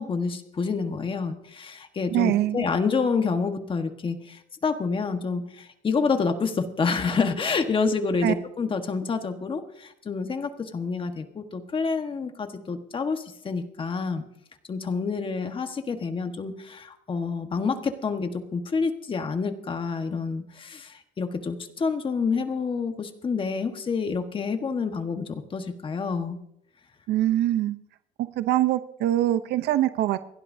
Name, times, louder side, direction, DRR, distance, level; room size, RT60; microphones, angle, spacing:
voice 1, 0.0-14.3 14.7-26.4, left 5 dB, 30° left, 7 dB, 1.4 m, -28 dB
voice 2, 2.1-2.7 8.2-8.3 27.1-27.8 28.2-30.3, right 13 dB, 75° right, 12 dB, 0.7 m, -23 dB
28.0 x 12.0 x 2.7 m, 0.75 s
cardioid pair, 110°, 17 cm